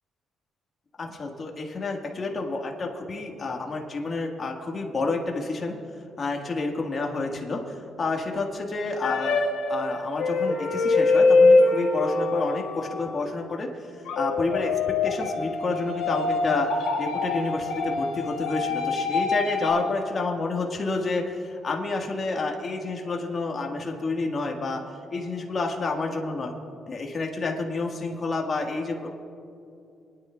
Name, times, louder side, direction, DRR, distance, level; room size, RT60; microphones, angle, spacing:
voice 1, 1.0-5.8 6.2-9.4 9.7-24.8 25.1-26.5 26.9-29.1, left 3 dB, 45° left, 1 dB, 1.5 m, -29 dB
sound 1, 9.0-13.3 14.1-19.7, left 3 dB, 85° left, 1.4 m, -24 dB
26.0 x 10.0 x 2.3 m, 2.6 s
supercardioid pair, 70°, 0 cm